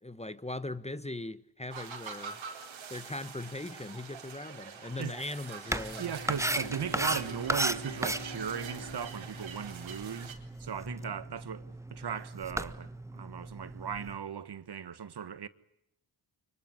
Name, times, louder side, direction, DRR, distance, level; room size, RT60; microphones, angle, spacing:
voice 1, 0.0-2.4 2.9-6.1 10.9-11.1, left 2 dB, 15° left, 1.3 m, -40 dB
sound 1, 1.7-10.3, right 6 dB, 80° right, 4.4 m, -45 dB
sound 2, 5.7-14.2, right 1 dB, 5° right, 1.5 m, -36 dB
voice 2, 6.0-15.5, right 8 dB, 55° right, 1.5 m, -38 dB
Bowed string instrument, 6.1-10.7, equal, 75° left, 7.9 m, -47 dB
25.0 x 23.0 x 9.8 m
cardioid pair, 55°, 46 cm